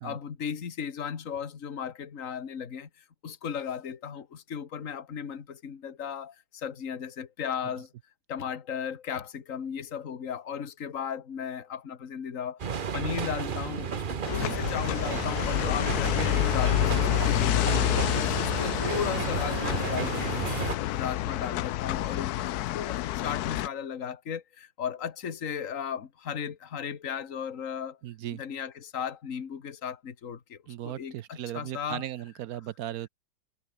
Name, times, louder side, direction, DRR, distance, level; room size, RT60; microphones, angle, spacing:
voice 1, 0.0-2.9 3.2-7.9 8.3-12.6 12.9-18.0 18.4-20.3 20.8-28.0 28.3-30.6 30.8-32.0, left 7 dB, 45° left, 1.9 m, -36 dB
sound 1, 12.6-20.8, right 6 dB, 40° right, 0.7 m, -32 dB
sound 2, 14.2-23.7, left 15 dB, 75° left, 0.9 m, -28 dB
voice 2, 14.3-14.6 17.7-17.9 28.0-28.4 30.7-33.1, right 12 dB, 70° right, 0.9 m, -37 dB
omnidirectional pair, 2.1 m